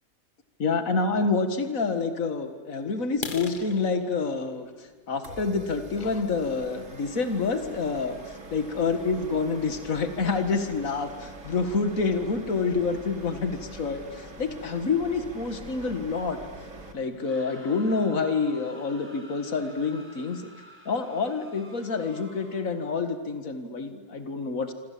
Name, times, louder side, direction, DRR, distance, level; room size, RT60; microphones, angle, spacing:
voice 1, 0.6-16.4 16.9-20.5 20.9-24.7, left 4 dB, 70° left, 8 dB, 2.3 m, -28 dB
sound 1, 3.1-6.9 7.4-7.6 8.0-8.1 8.6-8.7 9.0-9.1 9.6-9.7 9.9-10.4, left 4 dB, 40° left, 1.5 m, -41 dB
sound 2, 5.2-16.9, right 2 dB, 65° right, 3.1 m, -44 dB
sound 3, 17.1-22.8, equal, 10° right, 5.6 m, -50 dB
26.5 x 26.0 x 8.6 m, 1.3 s
omnidirectional pair, 1.5 m